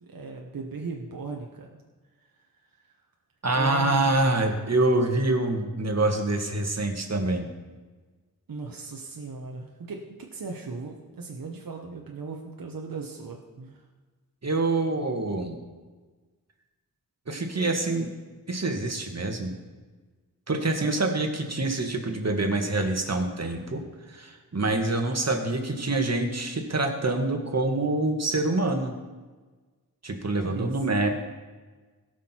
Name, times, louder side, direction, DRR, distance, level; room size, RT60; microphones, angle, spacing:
voice 1, 0.0-1.8 2.2-2.3 2.7-3.0 3.5-4.1 8.5-13.9 30.4-30.7, right 4 dB, 75° right, 1 dB, 1.1 m, -38 dB
voice 2, 3.4-7.5 14.4-15.6 17.3-18.1 18.5-19.5 20.5-23.8 24.1-28.9 30.0-31.1, right 2 dB, 45° right, 4 dB, 1.7 m, -26 dB
17.0 x 6.4 x 4.5 m, 1.3 s
wide cardioid pair, 55°, 35 cm